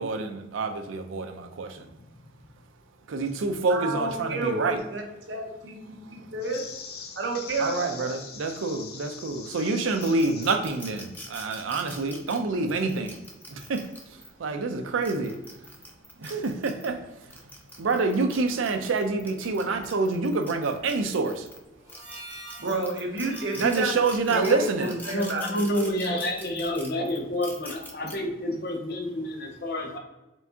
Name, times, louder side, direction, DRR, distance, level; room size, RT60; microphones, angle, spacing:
voice 1, 0.0-1.8 3.1-4.8 6.1-6.2 7.6-13.2 13.5-15.4 16.2-17.0 17.8-21.5 23.6-25.0, right 3 dB, 90° right, 6 dB, 0.5 m, -27 dB
voice 2, 3.7-5.0 5.3-6.7 7.2-8.1 22.6-23.9 24.2-25.4 25.8-26.2, right 2 dB, 65° right, 1 dB, 0.9 m, -30 dB
voice 3, 6.5-10.2 24.3-30.0, left 1 dB, 50° left, 2 dB, 0.7 m, -31 dB
sound 1, 10.0-14.3 14.9-16.9 17.3-21.6 21.9-28.1, left 1 dB, 10° left, 0.4 m, -44 dB
Harmonica, 21.8-26.4, right 2 dB, 15° right, 1.2 m, -48 dB
4.5 x 3.5 x 2.7 m, 0.99 s
head